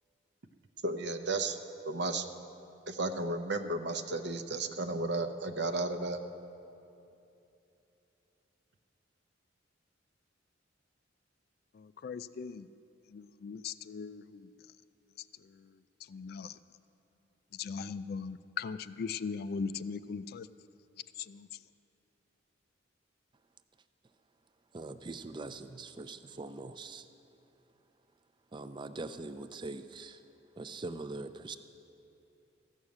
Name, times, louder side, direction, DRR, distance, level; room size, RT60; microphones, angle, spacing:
voice 1, 0.8-1.6 1.8-2.3 2.9-6.2, right 2 dB, 60° right, 8 dB, 0.7 m, -33 dB
voice 2, 11.7-12.7 13.1-14.5 15.5-15.7 16.1-16.6 17.5-20.5 21.2-21.5, left 5 dB, 55° left, 14 dB, 0.3 m, -39 dB
voice 3, 24.7-27.1 28.5-30.2 30.6-31.6, right 3 dB, 25° right, 11 dB, 0.4 m, -42 dB
14.5 x 6.4 x 8.4 m, 2.8 s
head